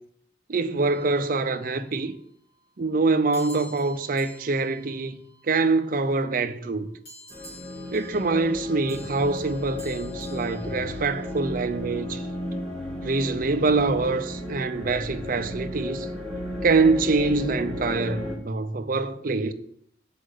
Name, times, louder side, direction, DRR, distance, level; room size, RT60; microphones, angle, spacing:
voice 1, 0.5-2.1 2.8-5.2 5.5-6.9 7.9-12.2 13.0-16.1 16.6-19.5, right 3 dB, 50° right, 0.5 m, -24 dB
sound 1, 0.8-2.0 3.3-6.0 7.0-11.6, equal, 60° left, 3.5 m, -50 dB
sound 2, 7.3-18.4, left 1 dB, 5° left, 1.2 m, -34 dB
6.2 x 5.0 x 6.5 m
head